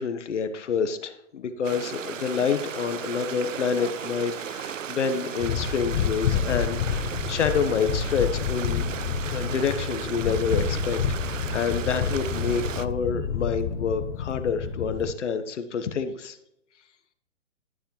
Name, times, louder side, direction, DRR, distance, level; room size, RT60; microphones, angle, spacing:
voice 1, 0.0-8.8 9.3-11.0 11.3-16.4, left 6 dB, 70° left, 10 dB, 1.3 m, -28 dB
Stream, 1.6-12.9, right 8 dB, 85° right, 0.7 m, -35 dB
sound 1, 5.4-15.1, left 7 dB, 35° left, 0.8 m, -29 dB
12.5 x 6.7 x 3.2 m, 0.81 s
hypercardioid pair, 130°, 37 cm